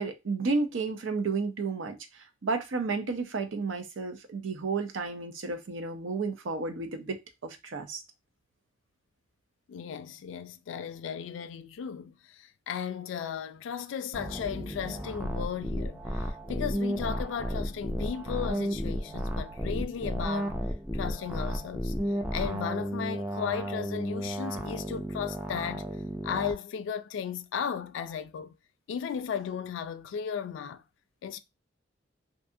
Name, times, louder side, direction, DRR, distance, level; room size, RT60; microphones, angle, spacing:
voice 1, 0.0-2.0 2.4-8.0, right 4 dB, 85° right, 0.6 m, -32 dB
voice 2, 9.7-20.6 20.9-21.9 22.3-25.9 26.2-28.5 28.9-30.8 31.2-31.4, left 7 dB, 75° left, 0.3 m, -35 dB
sound 1, 14.1-26.5, equal, 5° right, 0.4 m, -33 dB
2.6 x 2.4 x 2.6 m
head